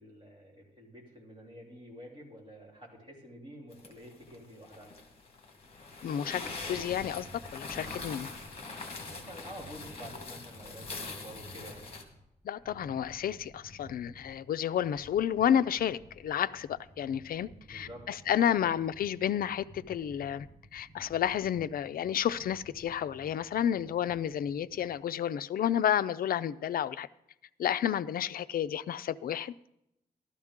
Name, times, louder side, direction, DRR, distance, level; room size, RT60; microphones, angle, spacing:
voice 1, 0.0-4.9 8.7-12.0 17.7-18.1 18.4-18.7, equal, 30° right, 2.9 m, -49 dB
sound 1, 3.7-12.0, left 3 dB, 40° left, 1.5 m, -43 dB
voice 2, 6.0-6.4 6.7-7.3 7.5-8.3 12.4-20.5 20.7-27.1 27.6-29.7, left 9 dB, 70° left, 0.4 m, -31 dB
sound 2, 6.3-25.0, right 1 dB, 10° right, 1.4 m, -53 dB
13.0 x 12.5 x 3.6 m
wide cardioid pair, 160°, 16 cm